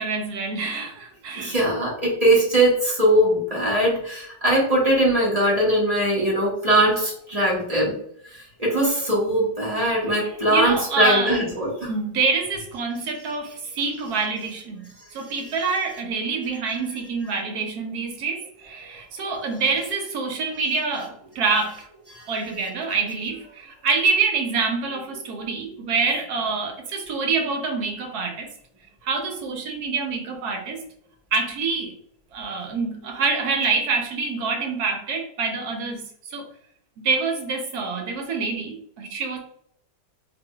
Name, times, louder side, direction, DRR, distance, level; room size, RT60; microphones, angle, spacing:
voice 1, 0.0-1.6 10.0-21.9 22.3-28.5 29.0-30.8 31.3-31.9 32.3-36.4 37.0-39.4, right 4 dB, 65° right, 2 dB, 1.3 m, -26 dB
voice 2, 1.4-7.9 8.3-11.9 22.1-22.2, right 1 dB, 25° right, -6 dB, 1.3 m, -21 dB
3.8 x 3.5 x 2.3 m, 0.69 s
omnidirectional pair, 1.9 m